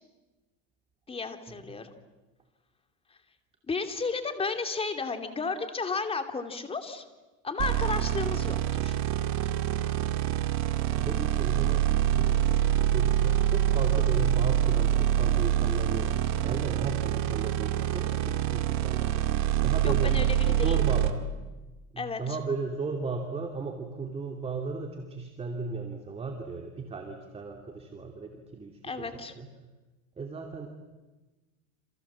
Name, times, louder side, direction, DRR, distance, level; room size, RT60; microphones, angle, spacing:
voice 1, 1.1-1.9 3.7-7.0 7.4-9.0 19.8-21.0 22.0-22.4 28.8-29.3, left 4 dB, 15° left, 7 dB, 2.6 m, -33 dB
sound 1, 7.6-21.1, right 12 dB, 50° right, 2.3 m, -26 dB
voice 2, 10.9-12.6 12.9-16.1 16.4-19.2 19.6-20.2 20.5-21.2 21.9-29.5 30.2-30.7, right 4 dB, 15° right, 3 dB, 2.8 m, -35 dB
28.5 x 27.0 x 7.5 m, 1.2 s
supercardioid pair, 135°, 36 cm